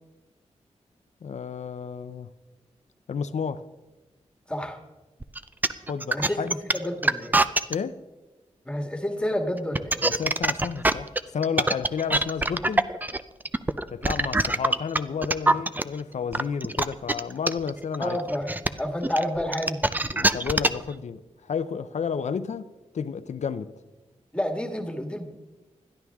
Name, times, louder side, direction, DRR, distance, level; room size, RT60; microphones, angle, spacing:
voice 1, 1.2-2.3 3.1-3.6 5.9-6.5 7.7-8.0 10.0-12.9 13.9-18.2 20.1-23.7, left 6 dB, 70° left, 0.7 m, -31 dB
sound 1, 5.2-7.7 9.6-15.8 16.3-20.9, right 2 dB, 15° right, 0.5 m, -23 dB
voice 2, 6.1-7.4 8.7-10.0 18.0-19.9 24.3-25.3, equal, 10° left, 1.8 m, -29 dB
20.5 x 13.0 x 3.6 m
wide cardioid pair, 105°, 12 cm